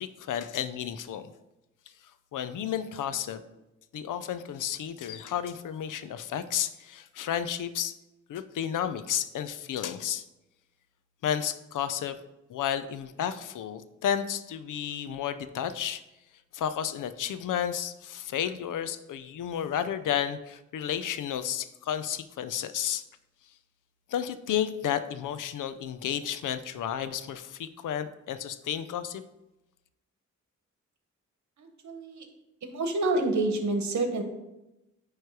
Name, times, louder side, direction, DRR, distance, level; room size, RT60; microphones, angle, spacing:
voice 1, 0.0-1.3 2.3-3.4 3.9-7.9 8.3-10.2 11.2-12.2 12.5-16.0 16.5-23.0 24.1-29.2, left 9 dB, 80° left, 12 dB, 0.5 m, -32 dB
voice 2, 31.6-32.3 32.6-34.2, right 2 dB, 65° right, 6 dB, 1.2 m, -28 dB
9.6 x 3.2 x 4.6 m, 0.95 s
cardioid pair, 85°, 31 cm